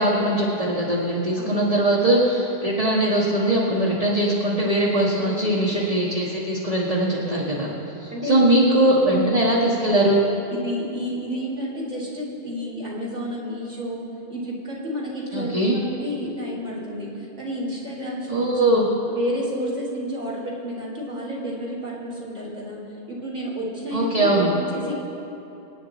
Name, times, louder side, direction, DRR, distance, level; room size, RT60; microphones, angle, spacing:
voice 1, 0.0-7.7 8.0-10.2 15.3-15.8 18.3-18.9 23.9-24.5, right 1 dB, 35° right, -5 dB, 1.6 m, -21 dB
voice 2, 1.4-1.8 5.2-5.6 7.1-7.3 8.1-8.5 8.8-9.0 10.5-25.0, equal, 50° right, -4 dB, 3.2 m, -31 dB
26.5 x 9.0 x 4.2 m, 3.0 s
omnidirectional pair, 1.2 m